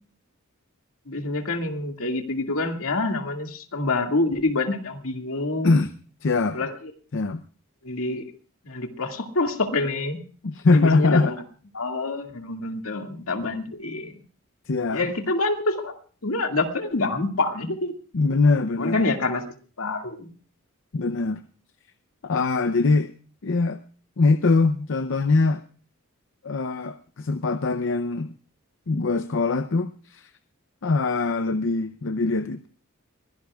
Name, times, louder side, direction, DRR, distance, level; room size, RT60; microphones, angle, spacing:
voice 1, 1.1-5.8 6.5-6.7 7.8-8.3 8.6-10.2 10.7-11.4 11.7-14.1 14.9-15.9 16.2-17.9 18.8-19.4 19.8-20.3, left 2 dB, 80° left, 4 dB, 2.1 m, -26 dB
voice 2, 6.2-6.6 7.1-7.4 10.4-11.3 14.7-15.1 18.1-19.0 20.9-21.4 22.2-23.1 23.4-23.8 24.2-25.6 26.4-28.3 28.9-30.3 30.8-32.7, left 3 dB, 65° left, 10 dB, 0.7 m, -22 dB
23.5 x 17.0 x 2.4 m, 0.40 s
head